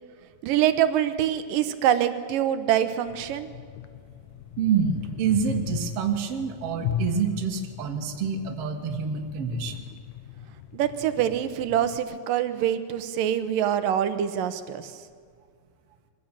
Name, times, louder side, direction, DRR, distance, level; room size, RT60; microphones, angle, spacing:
voice 1, 0.4-3.5 10.7-14.9, right 10 dB, 80° right, 11 dB, 2.6 m, -25 dB
sound 1, 3.1-12.0, left 9 dB, 70° left, 2.1 m, -37 dB
voice 2, 4.6-9.9, right 6 dB, 50° right, 3 dB, 2.3 m, -27 dB
23.0 x 15.5 x 8.9 m, 2.1 s
omnidirectional pair, 3.9 m